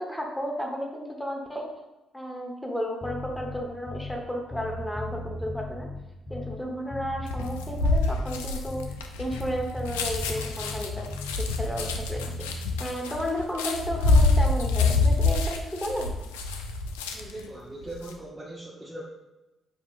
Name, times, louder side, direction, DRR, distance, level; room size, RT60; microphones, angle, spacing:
voice 1, 0.0-1.8 2.1-5.9 6.3-8.9 9.2-11.1 11.4-12.2 12.5-16.1, equal, 5° left, 0 dB, 1.1 m, -33 dB
Bass guitar, 3.0-4.3 4.5-6.7 6.9-9.1 9.3-11.5 11.7-12.6, left 1 dB, 30° left, 0.7 m, -37 dB
sound 1, 7.3-17.4 17.8-18.1, left 3 dB, 85° left, 0.3 m, -26 dB
voice 2, 17.1-19.0, right 1 dB, 20° right, -6 dB, 0.9 m, -40 dB
6.6 x 2.7 x 2.5 m, 1.0 s
hypercardioid pair, 45°, 0 cm